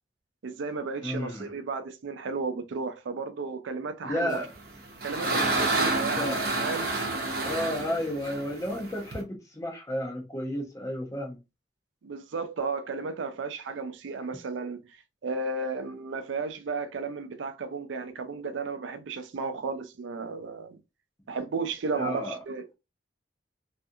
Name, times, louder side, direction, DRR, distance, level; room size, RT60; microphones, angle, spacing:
voice 1, 0.4-4.4 5.0-6.9 12.0-14.8 15.2-20.8 21.3-22.7, right 4 dB, 85° right, 0.4 m, -34 dB
voice 2, 1.0-1.5 4.0-4.5 6.2-6.4 7.4-11.4 21.9-22.4, left 1 dB, 15° left, 0.6 m, -32 dB
sound 1, 4.5-9.2, right 2 dB, 55° right, 0.8 m, -29 dB
2.5 x 2.3 x 2.6 m
head